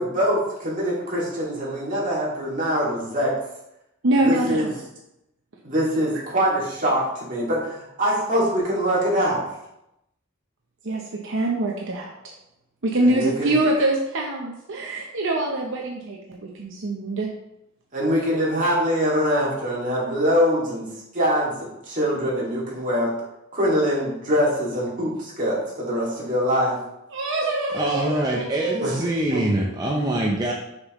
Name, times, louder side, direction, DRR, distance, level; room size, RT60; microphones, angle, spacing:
voice 1, 0.0-3.3 4.2-4.7 5.6-9.5 13.0-13.5 17.9-20.9 21.1-21.5 21.9-23.1 23.5-26.8 28.8-28.9 29.3-29.6, equal, 40° right, -5 dB, 2.3 m, -23 dB
voice 2, 4.0-4.7 10.8-12.1 12.8-16.2 16.4-17.3 27.1-29.1, right 2 dB, 65° right, -1 dB, 0.8 m, -24 dB
voice 3, 27.7-30.5, right 1 dB, 20° right, -2 dB, 0.6 m, -24 dB
6.4 x 5.6 x 3.1 m, 0.85 s
head